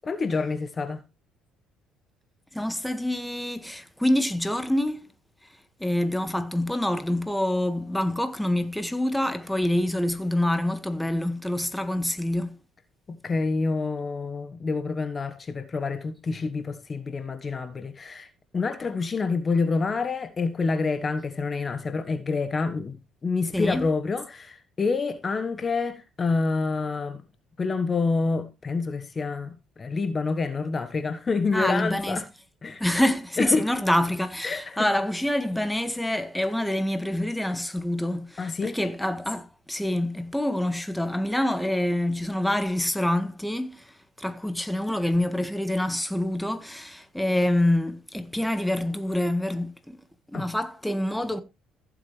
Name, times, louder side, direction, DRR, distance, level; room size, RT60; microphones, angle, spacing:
voice 1, 0.1-1.0 13.1-18.3 18.5-23.0 23.2-27.2 27.6-32.3 32.6-32.8 33.4-33.7 34.4-34.9 38.4-38.8 50.3-50.5, left 4 dB, 35° left, 1.2 m, -27 dB
voice 2, 2.5-5.1 5.8-12.6 23.5-23.9 31.5-32.2 32.8-50.0 50.3-51.4, left 1 dB, 5° left, 1.7 m, -26 dB
15.0 x 7.7 x 3.2 m
hypercardioid pair, 60°, 0 cm